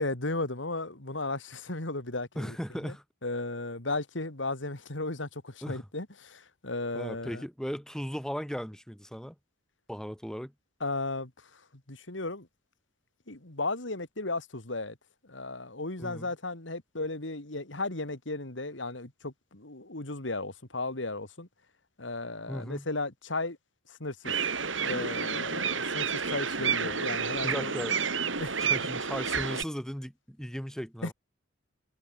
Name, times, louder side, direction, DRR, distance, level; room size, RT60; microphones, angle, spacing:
voice 1, 0.0-2.6 2.8-2.9 3.2-7.4 10.8-11.6 11.9-12.5 13.3-15.0 15.2-21.5 22.0-23.6 23.9-24.4 24.8-27.7 28.4-28.5 31.0-31.1, left 2 dB, 70° left, 2.9 m, -35 dB
voice 2, 2.4-3.0 5.6-5.9 6.9-9.4 9.9-10.5 16.0-16.3 22.5-22.9 27.4-28.0 28.7-31.1, equal, 5° left, 4.3 m, -37 dB
sound 1, 24.2-29.6, right 6 dB, 80° right, 5.5 m, -30 dB
head